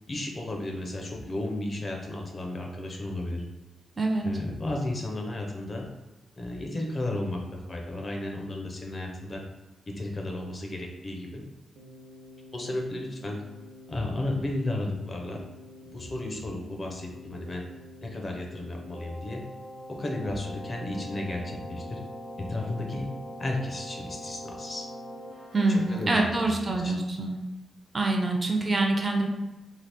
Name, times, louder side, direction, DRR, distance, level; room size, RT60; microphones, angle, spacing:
voice 1, 0.1-3.4 4.2-5.9 6.4-9.4 9.9-11.4 12.5-13.4 13.9-15.4 15.9-17.7 18.0-19.4 19.9-22.0 22.4-23.1 23.4-24.9 25.7-26.9, left 1 dB, 30° left, 1 dB, 0.5 m, -33 dB
voice 2, 4.0-4.3 25.5-27.4 27.9-29.3, right 2 dB, 30° right, 2 dB, 0.4 m, -25 dB
Keyboard (musical), 11.7-26.8, equal, 90° right, 0.9 m, -44 dB
2.8 x 2.4 x 3.3 m, 1.1 s
wide cardioid pair, 140°, 0 cm